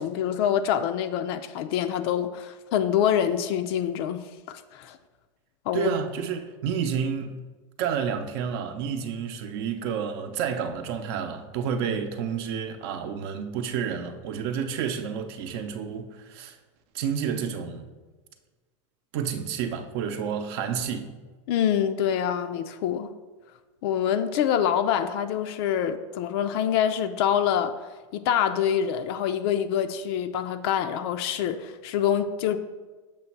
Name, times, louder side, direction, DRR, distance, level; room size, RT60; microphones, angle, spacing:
voice 1, 0.0-5.0 5.7-5.9 21.5-23.1 23.8-27.7 28.1-32.6, left 9 dB, 55° left, 0.4 m, -26 dB
voice 2, 5.7-7.4 7.8-16.6 16.9-17.9 19.1-21.1, right 7 dB, 55° right, 0.7 m, -30 dB
6.9 x 3.1 x 5.8 m
supercardioid pair, 145°, 16 cm